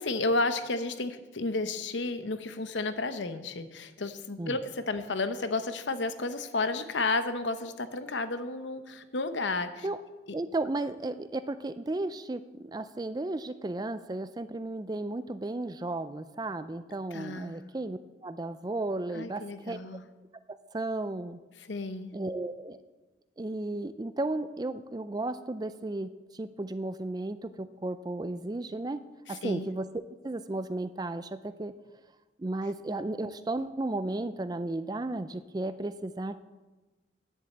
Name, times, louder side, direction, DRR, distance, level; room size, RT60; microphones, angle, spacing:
voice 1, 0.0-9.9 17.1-17.6 19.1-20.0 21.6-22.1 29.3-29.6, left 3 dB, 70° left, 10 dB, 0.9 m, -32 dB
voice 2, 10.3-19.8 20.7-21.4 22.1-22.8 23.4-29.0 29.3-29.9 30.2-31.7 32.4-36.4, right 2 dB, 20° right, 13 dB, 0.4 m, -34 dB
10.5 x 7.4 x 7.9 m, 1.2 s
head